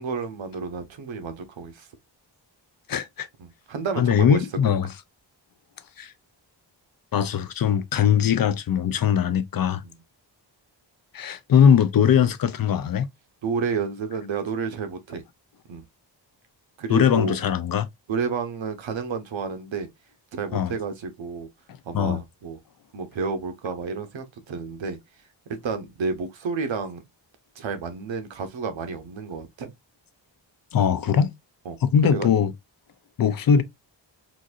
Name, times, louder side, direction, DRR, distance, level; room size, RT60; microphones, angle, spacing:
voice 1, 0.0-1.9 3.4-4.4 13.4-15.2 15.7-15.8 16.8-17.4 18.1-19.9 20.3-21.5 21.8-22.6 22.9-25.0 25.6-27.0 27.6-29.7 31.7-31.8 32.1-32.3, right 5 dB, 85° right, 0.9 m, -30 dB
voice 2, 2.9-3.3 4.0-4.9 6.0-6.1 7.1-9.8 11.1-13.1 16.9-17.9 20.5-20.7 21.7-22.2 30.7-31.3 31.8-32.5 33.2-33.6, left 8 dB, 50° left, 0.4 m, -21 dB
3.9 x 2.5 x 2.4 m
wide cardioid pair, 130°, 45 cm